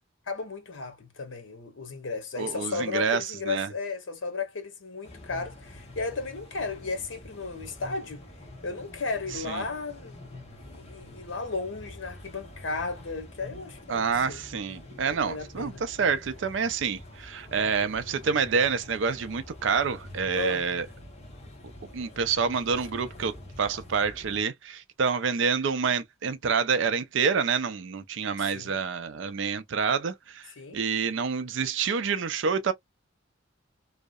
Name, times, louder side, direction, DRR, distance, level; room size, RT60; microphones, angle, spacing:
voice 1, 0.3-8.2 8.6-10.2 10.6-14.4 15.1-15.8 20.3-20.7 28.4-28.8 30.6-30.8, left 4 dB, 70° left, 0.7 m, -34 dB
voice 2, 2.4-3.7 9.5-9.6 13.9-20.9 21.9-30.5 30.7-32.7, right 5 dB, 70° right, 0.4 m, -27 dB
sound 1, 5.0-24.4, left 1 dB, 30° left, 0.8 m, -46 dB
2.7 x 2.0 x 2.2 m
head